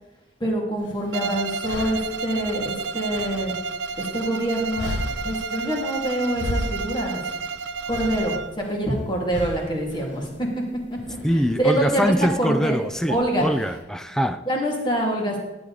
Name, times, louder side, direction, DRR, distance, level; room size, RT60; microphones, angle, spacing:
voice 1, 0.4-3.5 4.0-4.9 5.2-7.2 7.9-10.5 10.9-12.8 13.1-13.5 14.5-15.4, right 1 dB, 25° left, -1 dB, 2.4 m, -25 dB
sound 1, 0.8-13.8, left 1 dB, 80° left, 1.0 m, -36 dB
Bowed string instrument, 1.1-8.6, right 4 dB, 70° right, 0.5 m, -31 dB
voice 2, 11.2-14.4, equal, 5° left, 10 dB, 0.4 m, -23 dB
11.5 x 9.0 x 4.0 m, 0.99 s
head